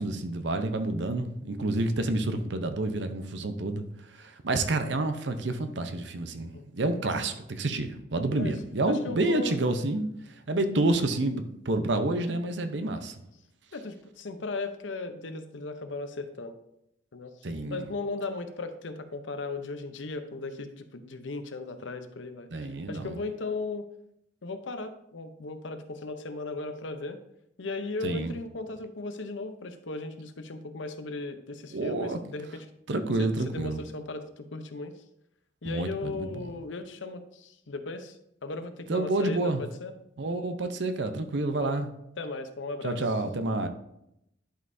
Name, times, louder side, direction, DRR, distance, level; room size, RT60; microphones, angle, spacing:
voice 1, 0.0-3.8 4.2-10.1 10.5-13.1 17.4-17.9 22.5-23.2 28.0-28.3 31.7-32.2 32.9-33.9 35.6-36.5 38.9-39.6 40.2-41.9 42.8-43.7, right 2 dB, 70° right, 8 dB, 0.7 m, -29 dB
voice 2, 8.9-9.6 13.7-16.5 17.1-17.3 17.7-22.5 22.9-23.8 24.4-27.2 27.6-32.6 33.2-34.9 35.6-38.2 38.4-39.9 41.6-41.8 42.2-43.0, left 3 dB, 85° left, 9 dB, 0.8 m, -37 dB
11.5 x 5.4 x 2.7 m, 0.80 s
head